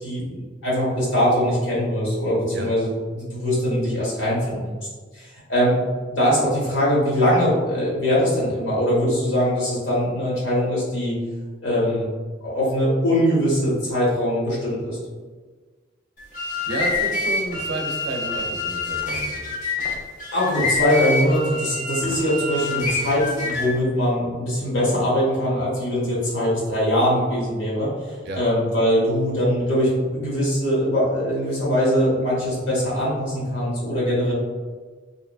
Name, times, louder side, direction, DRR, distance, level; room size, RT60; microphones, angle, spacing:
voice 1, 0.0-4.7 5.1-5.7 6.1-11.2 11.6-12.1 12.4-15.0 20.3-34.3, equal, 80° left, -6 dB, 1.1 m, -22 dB
sound 1, 16.2-23.8, left 3 dB, 45° left, 0.5 m, -27 dB
voice 2, 16.7-19.7 28.2-28.4, right 1 dB, 60° right, 2 dB, 0.4 m, -31 dB
2.8 x 2.2 x 2.4 m, 1.4 s
head